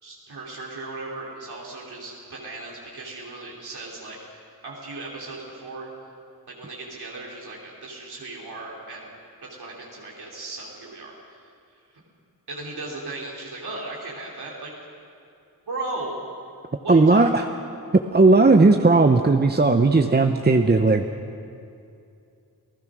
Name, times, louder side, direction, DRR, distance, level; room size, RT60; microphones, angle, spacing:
voice 1, 0.0-5.9 6.5-9.1 9.5-11.4 12.5-14.7 15.7-16.2 16.8-17.3, right 2 dB, 90° right, -3 dB, 3.2 m, -36 dB
voice 2, 16.9-17.4 18.1-21.0, right 3 dB, 25° right, 5 dB, 0.9 m, -16 dB
28.0 x 16.5 x 6.2 m, 2.5 s
wide cardioid pair, 70°, 38 cm